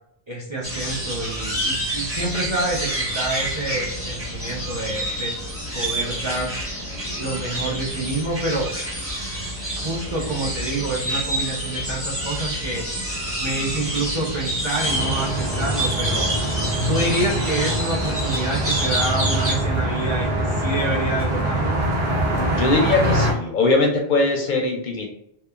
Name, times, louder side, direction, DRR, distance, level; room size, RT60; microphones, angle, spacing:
voice 1, 0.3-5.3 5.7-6.5 7.2-8.7 9.8-13.0 13.4-16.3 16.9-21.8, right 2 dB, 40° right, -4 dB, 0.4 m, -27 dB
sound 1, 0.6-19.5, right 1 dB, 15° right, 0.9 m, -28 dB
sound 2, 14.8-23.3, right 1 dB, 75° right, 1.0 m, -24 dB
voice 2, 22.6-25.1, left 3 dB, 60° left, 1 dB, 0.6 m, -20 dB
2.9 x 2.1 x 2.3 m, 0.73 s
omnidirectional pair, 1.0 m